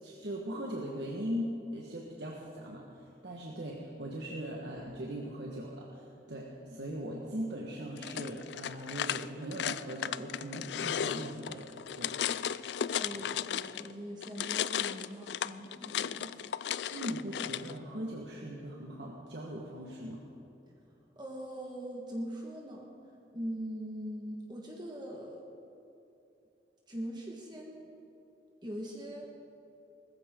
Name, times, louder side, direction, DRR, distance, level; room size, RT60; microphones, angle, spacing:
voice 1, 0.0-11.7 11.9-12.2 13.1-13.3 16.9-20.2, equal, 75° right, -3 dB, 1.5 m, -40 dB
sound 1, 8.0-13.9 14.2-17.7, left 9 dB, 75° left, 0.4 m, -35 dB
voice 2, 12.5-16.3 20.7-20.8 21.1-22.9 23.3-25.4 26.9-27.9 28.6-29.3, equal, 25° right, -2 dB, 1.6 m, -42 dB
20.0 x 14.5 x 3.8 m, 2.8 s
head